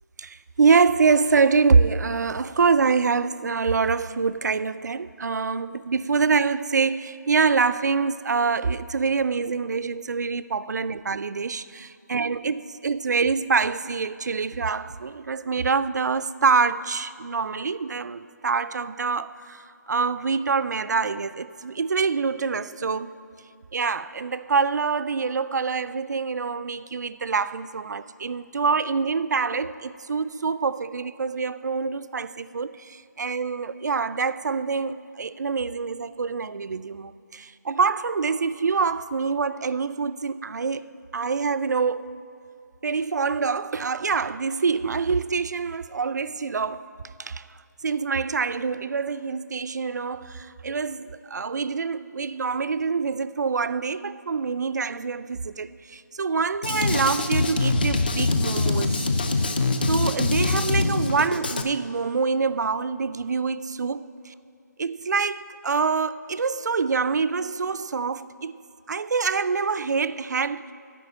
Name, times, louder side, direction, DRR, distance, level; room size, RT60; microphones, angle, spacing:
voice 1, 0.2-23.1 23.7-42.1 42.8-46.8 47.2-47.4 47.8-59.1 59.9-64.3 64.8-68.6 68.9-70.7, right 5 dB, 65° right, 0.4 m, -25 dB
Drum kit, 56.6-61.6, left 3 dB, 30° left, 0.5 m, -24 dB
10.5 x 5.3 x 8.4 m
figure-of-eight pair, 175°, 10 cm